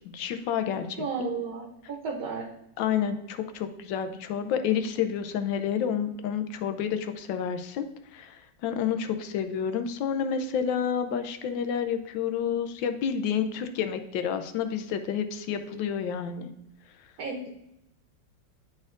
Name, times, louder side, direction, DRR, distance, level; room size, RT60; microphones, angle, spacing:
voice 1, 0.1-0.9 2.8-7.9 8.1-16.5, left 8 dB, 80° left, 8 dB, 1.3 m, -29 dB
voice 2, 1.0-2.5 17.2-17.4, right 4 dB, 60° right, 0 dB, 1.2 m, -33 dB
11.0 x 4.2 x 2.5 m, 0.83 s
omnidirectional pair, 2.0 m